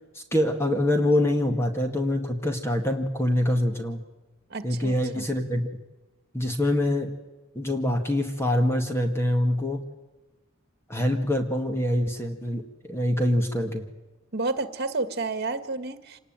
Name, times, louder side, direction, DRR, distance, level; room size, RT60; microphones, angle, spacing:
voice 1, 0.2-4.0 4.6-5.7 6.3-7.2 7.6-9.8 10.9-13.9, left 1 dB, 10° left, 5 dB, 2.0 m, -25 dB
voice 2, 4.5-5.2 14.3-16.2, right 3 dB, 50° right, 12 dB, 1.8 m, -30 dB
26.5 x 20.0 x 9.0 m, 1.1 s
head